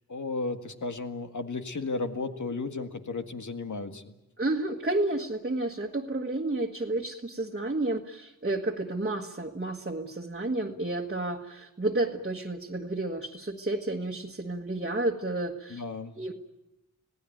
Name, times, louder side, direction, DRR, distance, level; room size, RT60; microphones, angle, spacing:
voice 1, 0.1-4.1 15.7-16.2, left 3 dB, 70° left, 7 dB, 1.9 m, -34 dB
voice 2, 4.4-15.8 16.2-16.3, right 2 dB, 35° right, -1 dB, 1.5 m, -31 dB
26.0 x 17.5 x 9.3 m, 0.92 s
wide cardioid pair, 90°, 31 cm